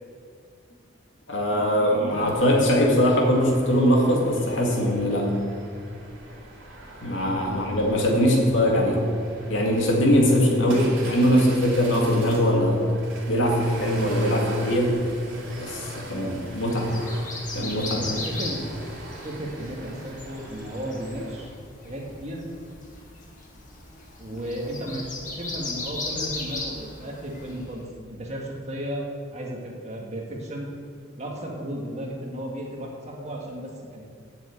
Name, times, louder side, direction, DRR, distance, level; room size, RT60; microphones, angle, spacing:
voice 1, 1.3-5.3 7.0-9.0 9.5-12.8 13.3-14.9 15.6-16.9 17.5-18.0, equal, 70° left, -1 dB, 2.2 m, -21 dB
sound 1, 2.1-21.4, right 2 dB, 75° right, 2.6 m, -42 dB
voice 2, 7.3-7.7 8.2-8.5 10.2-11.0 16.1-16.3 17.9-18.6 19.2-21.5 21.8-22.4 24.2-29.0 29.3-30.7 31.2-34.0, equal, 35° right, -1 dB, 1.7 m, -34 dB
sound 2, 15.3-27.8, left 3 dB, 40° left, 1.8 m, -37 dB
7.8 x 7.0 x 8.1 m, 2.1 s
head